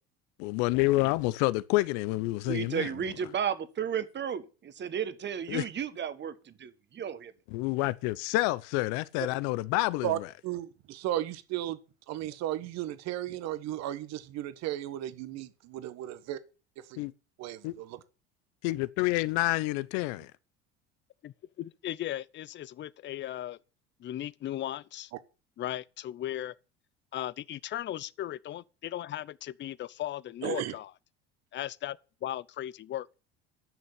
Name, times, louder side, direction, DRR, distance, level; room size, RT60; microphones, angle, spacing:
voice 1, 0.4-3.1 5.5-5.7 7.5-10.3 17.0-17.1 17.6-17.7 18.6-20.3, left 20 dB, 70° left, 0.8 m, -28 dB
voice 2, 2.5-7.3, right 8 dB, 35° right, 1.5 m, -33 dB
voice 3, 10.0-11.8 12.1-16.4 16.8-17.0 17.4-18.0 30.4-30.7, right 13 dB, 60° right, 1.4 m, -35 dB
voice 4, 21.2-23.6 24.0-25.1 25.6-26.5 27.1-30.9 31.5-33.1, left 12 dB, 40° left, 0.6 m, -37 dB
10.5 x 6.5 x 8.2 m
hypercardioid pair, 80°, 30 cm